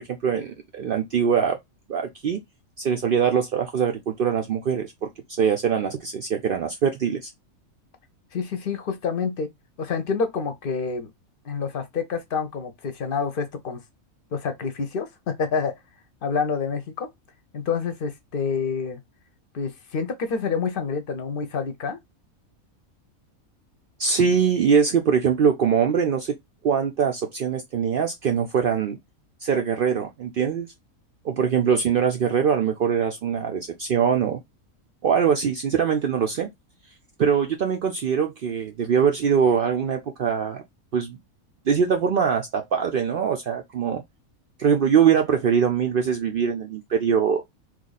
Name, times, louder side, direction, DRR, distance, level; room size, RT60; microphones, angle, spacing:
voice 1, 0.0-1.6 1.9-2.4 2.8-7.3 24.0-26.4 26.6-29.0 29.4-30.7 31.2-34.4 35.0-36.5 37.2-40.6 40.9-41.2 41.7-44.0 44.6-47.4, right 7 dB, 75° right, 0.5 m, -22 dB
voice 2, 8.3-9.5 9.8-11.1 11.4-13.8 14.3-15.7 16.2-17.1 17.5-19.0 19.5-22.0, left 5 dB, 50° left, 0.7 m, -27 dB
3.0 x 2.5 x 3.9 m
omnidirectional pair, 1.5 m